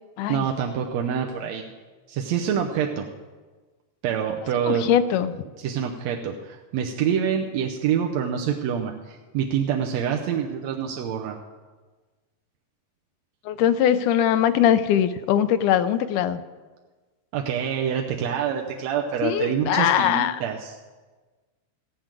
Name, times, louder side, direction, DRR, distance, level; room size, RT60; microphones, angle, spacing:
voice 1, 0.3-1.6 2.1-3.1 4.0-4.9 5.6-11.4 17.3-20.8, right 8 dB, 70° right, 1 dB, 1.8 m, -26 dB
voice 2, 4.7-5.4 13.5-16.4 19.2-20.4, left 10 dB, 85° left, 12 dB, 2.1 m, -21 dB
15.5 x 6.2 x 8.9 m, 1.3 s
omnidirectional pair, 3.6 m